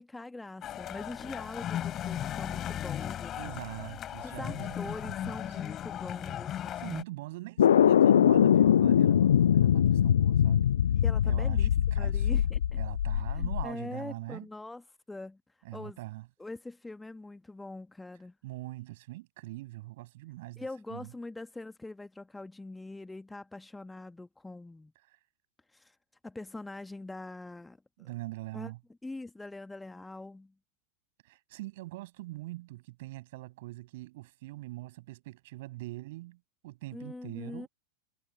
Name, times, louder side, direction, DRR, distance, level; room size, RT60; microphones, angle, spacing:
voice 1, 0.0-3.6 4.2-6.8 11.0-11.7 12.0-12.8 13.3-15.4 15.7-16.0 16.4-18.3 20.6-24.9 25.7-26.0 26.2-28.1 28.5-28.7 29.0-30.5 36.9-37.7, left 2 dB, 5° left, 1.4 m, -43 dB
sound 1, 0.6-7.0, left 11 dB, 30° left, 3.1 m, -37 dB
voice 2, 3.4-5.4 6.8-10.7 11.2-12.4 12.8-14.5 15.6-16.3 18.4-21.1 25.1-25.2 28.0-28.8 31.2-37.7, right 19 dB, 50° right, 6.6 m, -43 dB
sound 2, 7.6-13.7, left 9 dB, 65° left, 0.3 m, -23 dB
figure-of-eight pair, 90°, 0 cm